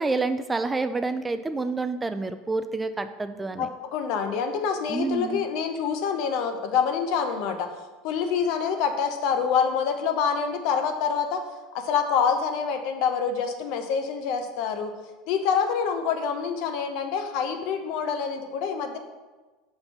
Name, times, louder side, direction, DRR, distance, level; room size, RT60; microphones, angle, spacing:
voice 1, 0.0-3.7 4.9-5.4, right 3 dB, 15° right, 10 dB, 0.4 m, -28 dB
voice 2, 3.6-7.7 8.0-11.4 11.7-14.9 15.3-19.0, left 6 dB, 65° left, 6 dB, 0.8 m, -26 dB
5.2 x 4.0 x 5.9 m, 1.2 s
hypercardioid pair, 90°, 0 cm